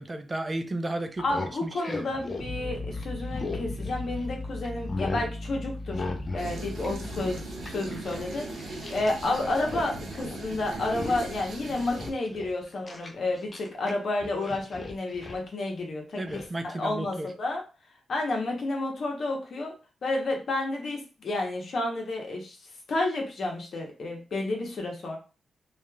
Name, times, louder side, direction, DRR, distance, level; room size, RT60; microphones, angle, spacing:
voice 1, 0.0-1.2 1.6-2.1 16.2-17.3, right 1 dB, 30° right, 8 dB, 0.4 m, -33 dB
sound 1, 1.1-4.3 4.6-5.3 5.9-6.5 6.8-9.2 9.5-9.9 10.2-10.4 10.8-11.4 11.8-13.9 14.2-15.4 16.3-16.5, left 3 dB, 40° left, 0.5 m, -37 dB
voice 2, 1.2-6.1 6.3-16.4 16.6-17.6 18.1-19.7 20.0-22.6 22.9-25.2, left 2 dB, 65° left, 1 dB, 0.9 m, -31 dB
sound 2, 2.4-7.7, left 2 dB, 5° right, 1.0 m, -37 dB
sound 3, 6.4-12.1, right 2 dB, 70° right, 0.7 m, -39 dB
2.9 x 2.4 x 2.3 m, 0.34 s
cardioid pair, 65°, 0 cm